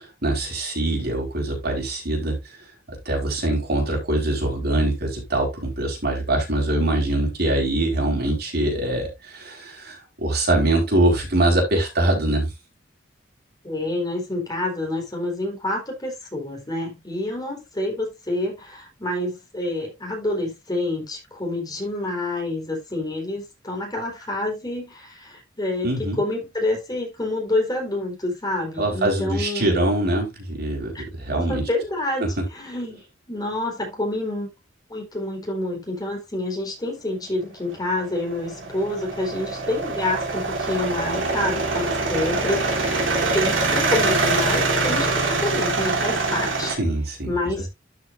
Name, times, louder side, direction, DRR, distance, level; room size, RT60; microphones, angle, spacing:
voice 1, 0.0-2.6 3.0-12.5 25.8-26.2 28.8-31.6 32.4-32.5 46.7-47.6, right 1 dB, 55° right, 4.5 m, -23 dB
voice 2, 13.6-29.8 30.9-31.0 31.3-33.0 33.3-34.5 34.9-46.7 47.3-47.7, left 1 dB, 20° left, 4.2 m, -28 dB
sound 1, 37.7-46.8, right 3 dB, 75° right, 3.3 m, -24 dB
12.5 x 6.6 x 2.6 m
head